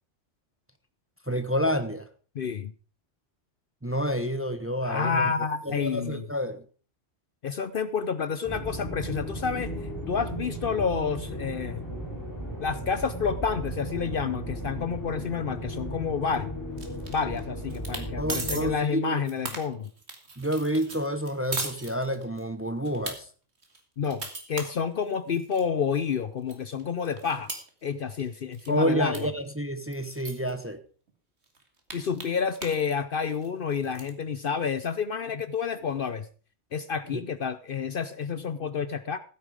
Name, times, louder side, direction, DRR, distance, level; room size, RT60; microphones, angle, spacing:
voice 1, 1.3-2.1 3.8-5.3 5.6-6.6 18.2-19.2 20.4-23.3 28.7-30.8 37.1-37.2, equal, 15° right, 10 dB, 0.8 m, -29 dB
voice 2, 2.3-2.7 4.8-6.2 7.4-11.8 12.6-16.5 17.1-19.9 24.0-27.5 27.8-29.3 31.9-36.3 36.7-39.2, left 6 dB, 55° left, 13 dB, 0.8 m, -29 dB
sound 1, 8.4-18.7, right 1 dB, 15° left, 4.2 m, -35 dB
sound 2, 16.8-17.4 17.7-18.0 18.3-18.6 19.1-22.4 22.8-23.1 23.6-25.6 26.1-26.2 26.5-28.3 28.5-28.8 29.1-29.2 29.5-29.6 29.9-30.5 31.1-31.2 31.4-32.8 33.1-34.1, right 3 dB, 65° right, 2.5 m, -37 dB
15.0 x 8.7 x 4.9 m, 0.40 s
omnidirectional pair, 1.2 m